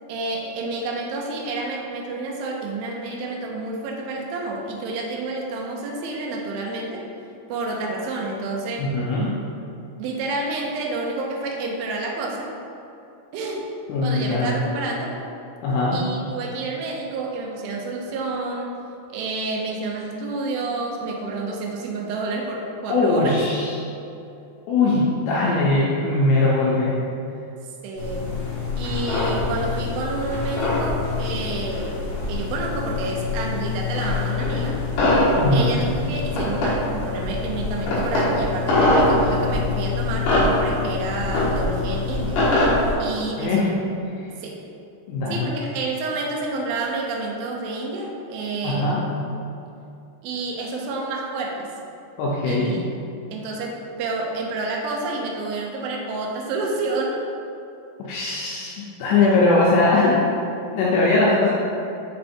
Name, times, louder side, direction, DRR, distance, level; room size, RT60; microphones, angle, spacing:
voice 1, 0.1-7.1 7.5-8.9 10.0-12.5 13.3-13.7 14.0-15.2 15.9-18.8 19.1-23.4 27.8-28.3 28.8-34.8 35.5-42.5 43.0-43.7 44.4-44.6 45.3-49.3 50.2-51.7 52.4-52.9 53.3-57.2 59.2-59.4, right 2 dB, 80° right, -1 dB, 2.2 m, -29 dB
voice 2, 8.8-9.4 13.9-14.6 15.6-16.0 22.9-23.8 24.7-27.0 35.4-35.8 43.4-43.7 45.1-45.5 48.6-49.0 52.2-52.8 58.0-60.4 60.7-61.5, left 2 dB, 80° left, -5 dB, 2.7 m, -20 dB
sound 1, 28.0-42.9, left 2 dB, 60° left, 2.6 m, -23 dB
6.5 x 3.4 x 4.3 m, 2.7 s
omnidirectional pair, 5.0 m